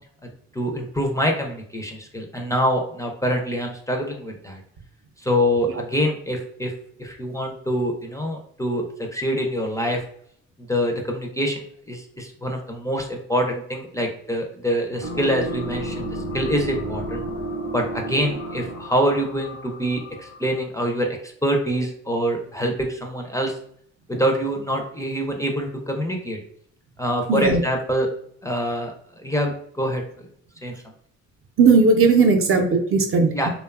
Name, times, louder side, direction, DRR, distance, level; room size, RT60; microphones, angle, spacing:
voice 1, 0.5-4.6 5.2-6.7 7.0-10.0 10.7-17.2 17.7-23.6 24.1-26.4 27.0-28.1 28.4-28.9 29.2-30.0 30.6-30.8 33.3-33.5, equal, 10° left, 1 dB, 0.4 m, -25 dB
sound 1, 15.0-20.6, right 1 dB, 85° left, 0.7 m, -32 dB
voice 2, 27.3-27.6 31.6-33.3, right 4 dB, 50° right, 4 dB, 0.5 m, -16 dB
2.7 x 2.2 x 2.3 m, 0.66 s
cardioid pair, 90°, 30 cm